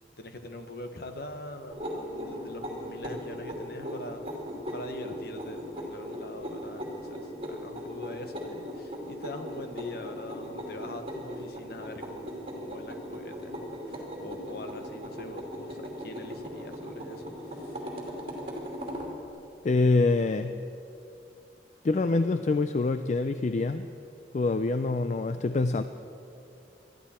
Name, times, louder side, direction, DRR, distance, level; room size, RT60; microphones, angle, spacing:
voice 1, 0.2-4.4 4.7-17.8, left 1 dB, 60° left, 6 dB, 1.2 m, -43 dB
sound 1, 1.7-19.1, equal, 30° right, 2.7 m, -38 dB
voice 2, 19.6-20.6 21.8-23.9 24.3-25.8, left 3 dB, 40° left, 10 dB, 0.4 m, -25 dB
20.5 x 13.5 x 4.3 m, 2.7 s
head